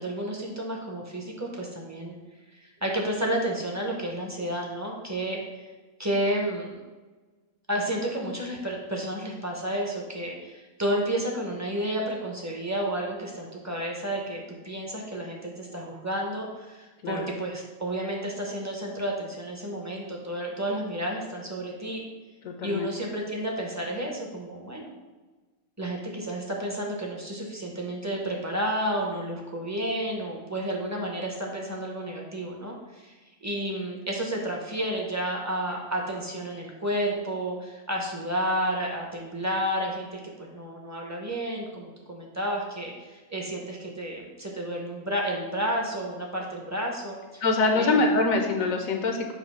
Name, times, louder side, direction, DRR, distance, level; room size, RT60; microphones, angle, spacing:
voice 1, 0.0-2.1 2.5-5.7 6.0-6.7 7.7-22.0 22.6-24.9 25.8-33.1 33.4-47.4 47.8-48.0, right 1 dB, 15° right, -1 dB, 0.7 m, -31 dB
voice 2, 22.4-22.9 47.4-49.3, left 3 dB, 75° left, 4 dB, 1.0 m, -24 dB
7.0 x 2.7 x 5.5 m, 1.3 s
omnidirectional pair, 1.5 m